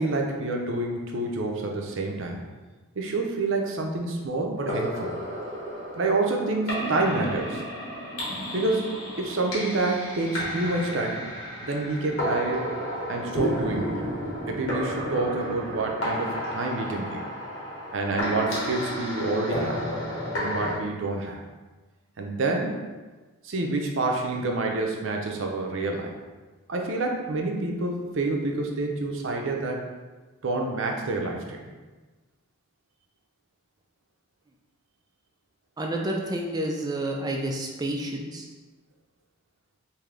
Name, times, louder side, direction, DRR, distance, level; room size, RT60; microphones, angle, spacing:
voice 1, 0.0-2.4 3.0-5.1 6.0-7.6 8.5-11.2 11.6-12.6 13.1-13.9 14.5-17.2 17.9-19.8 20.4-21.4 22.2-22.8 23.4-26.1 26.7-29.8 30.4-31.7, right 2 dB, 65° right, 1 dB, 0.6 m, -28 dB
sound 1, 4.6-20.8, equal, 85° left, 1.4 m, -32 dB
voice 2, 35.8-38.5, right 1 dB, 20° right, 1 dB, 0.3 m, -29 dB
3.3 x 2.7 x 3.7 m, 1.2 s
head